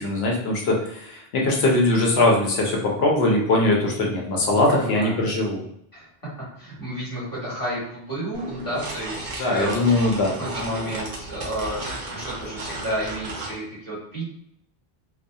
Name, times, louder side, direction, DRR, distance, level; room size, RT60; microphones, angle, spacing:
voice 1, 0.0-5.6 9.4-10.3, left 2 dB, 80° left, -1 dB, 0.9 m, -21 dB
voice 2, 4.7-5.2 5.9-6.1 6.6-9.8 10.4-14.3, equal, 20° left, -9 dB, 1.4 m, -31 dB
sound 1, 8.3-13.6, right 2 dB, 50° right, 0.7 m, -34 dB
2.7 x 2.3 x 2.2 m, 0.72 s
omnidirectional pair, 1.0 m